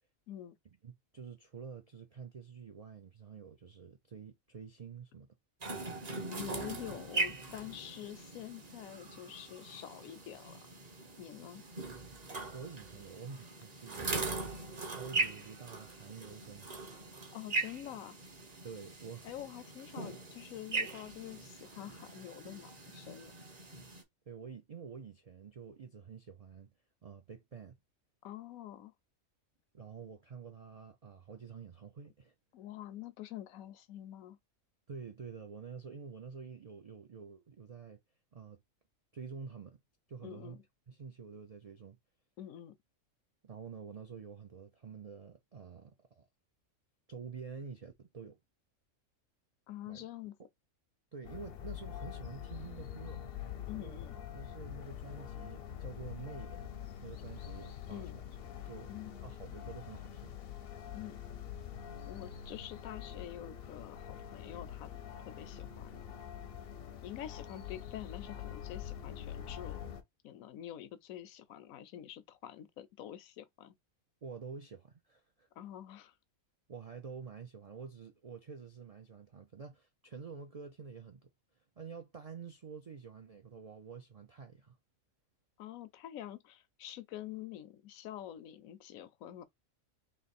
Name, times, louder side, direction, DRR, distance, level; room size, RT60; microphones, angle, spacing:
voice 1, 0.8-5.4 12.5-14.4 14.8-17.0 18.6-19.3 24.3-26.7 27.0-27.8 29.7-32.3 34.9-38.0 38.3-38.6 39.1-39.8 40.1-40.6 40.9-42.0 43.4-46.3 47.1-48.4 49.9-50.1 51.1-53.3 53.7-54.0 54.3-56.6 57.0-58.1 58.6-58.9 59.2-60.4 74.2-75.5 76.7-81.3 81.8-84.8, right 5 dB, 55° right, 0.4 m, -48 dB
sound 1, 5.6-24.0, right 3 dB, 35° right, 0.9 m, -40 dB
voice 2, 6.3-10.6 11.2-11.6 17.3-18.2 19.2-23.3 28.2-28.9 32.5-34.4 40.2-40.6 42.4-42.7 49.7-50.4 53.7-54.2 57.9-58.2 58.9-59.1 60.9-61.2 62.0-64.9 65.2-66.2 67.0-69.9 70.2-73.7 75.6-76.1 85.6-89.4, left 12 dB, 85° left, 1.1 m, -46 dB
sound 2, 51.2-70.0, left 9 dB, 55° left, 0.7 m, -45 dB
3.3 x 3.0 x 4.1 m
omnidirectional pair, 1.4 m